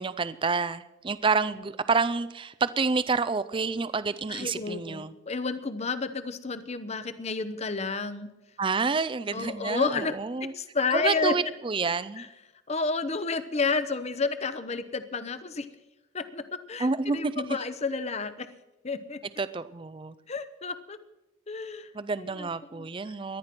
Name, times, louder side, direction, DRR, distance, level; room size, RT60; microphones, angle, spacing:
voice 1, 0.0-5.1 8.6-10.5 10.9-12.3 16.8-17.3 19.4-20.1 21.9-23.4, right 4 dB, 25° right, 14 dB, 0.4 m, -28 dB
voice 2, 4.3-8.3 9.3-10.1 10.5-11.3 12.2-12.3 12.7-15.7 16.1-18.5 18.8-19.2 20.3-21.0 21.5-21.9 22.2-22.5 22.7-23.1, left 4 dB, 30° left, 12 dB, 0.8 m, -31 dB
18.5 x 12.0 x 6.0 m, 0.97 s
head